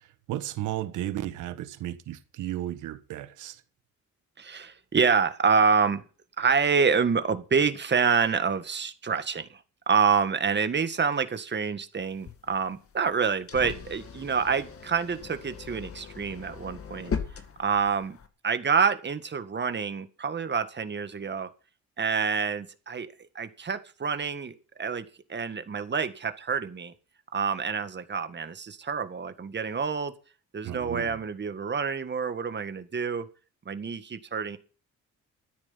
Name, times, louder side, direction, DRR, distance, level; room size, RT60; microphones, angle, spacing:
voice 1, 0.3-3.6 30.6-31.2, right 13 dB, 85° right, 1.5 m, -34 dB
voice 2, 4.4-6.0 6.4-9.6 9.9-17.1 17.6-18.2 18.4-21.5 22.0-23.1 23.4-25.0 25.3-26.9 27.3-30.1 30.5-33.3 33.7-34.6, right 5 dB, 35° right, 1.8 m, -27 dB
sound 1, 12.0-18.3, left 6 dB, 50° left, 2.1 m, -39 dB
13.5 x 9.9 x 5.8 m
cardioid pair, 90°, 30 cm